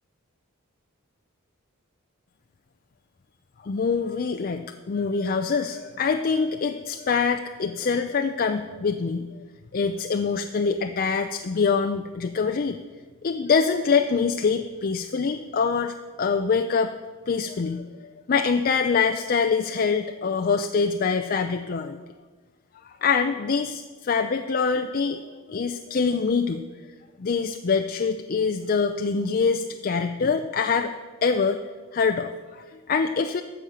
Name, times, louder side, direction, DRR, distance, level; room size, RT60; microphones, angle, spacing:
voice 1, 3.6-9.3 9.7-12.8 13.2-16.9 17.3-17.9 18.3-22.0 22.8-26.6 27.2-30.9 31.2-31.6 31.9-33.4, left 5 dB, 45° left, 6 dB, 0.4 m, -24 dB
12.0 x 7.1 x 6.7 m, 1.4 s
head